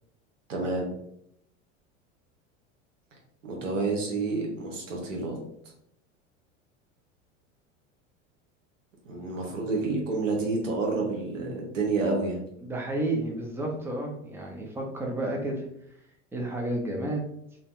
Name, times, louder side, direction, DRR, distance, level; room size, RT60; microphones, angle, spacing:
voice 1, 0.5-0.9 3.4-5.4 9.1-12.4, right 3 dB, 90° right, 0 dB, 0.9 m, -29 dB
voice 2, 12.6-15.6 16.3-17.2, right 1 dB, 5° right, 0 dB, 0.7 m, -31 dB
2.7 x 2.2 x 3.2 m, 0.74 s
hypercardioid pair, 80°, 37 cm